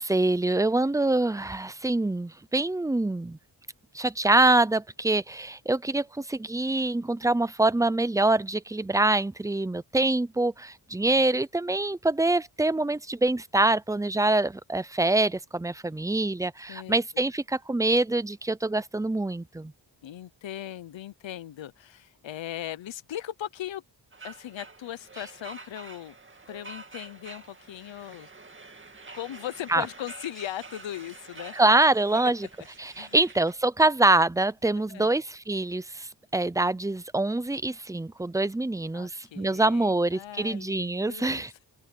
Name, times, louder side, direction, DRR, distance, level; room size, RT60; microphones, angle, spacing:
voice 1, 0.0-3.4 3.9-19.7 29.7-29.8 31.6-32.4 32.8-41.5, right 2 dB, 10° right, 0.5 m, -25 dB
voice 2, 20.0-23.8 24.2-26.1 26.5-28.3 29.1-31.5 33.0-33.2 34.9-35.1 38.9-41.7, left 12 dB, 90° left, 0.9 m, -38 dB
sound 1, 24.1-33.6, right 3 dB, 25° right, 2.3 m, -46 dB
open air
wide cardioid pair, 145°, 44 cm